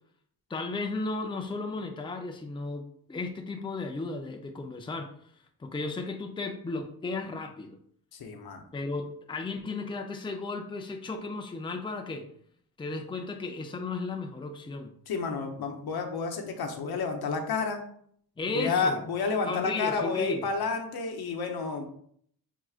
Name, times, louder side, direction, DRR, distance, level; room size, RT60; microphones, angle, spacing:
voice 1, 0.5-5.1 5.6-7.8 8.7-12.2 12.8-14.9 18.4-19.0 19.5-20.5, left 3 dB, 15° left, 4 dB, 0.5 m, -34 dB
voice 2, 8.2-8.6 15.1-17.8 18.5-21.9, left 4 dB, 75° left, 4 dB, 0.8 m, -30 dB
4.7 x 3.7 x 2.4 m, 0.63 s
cardioid pair, 80°, 38 cm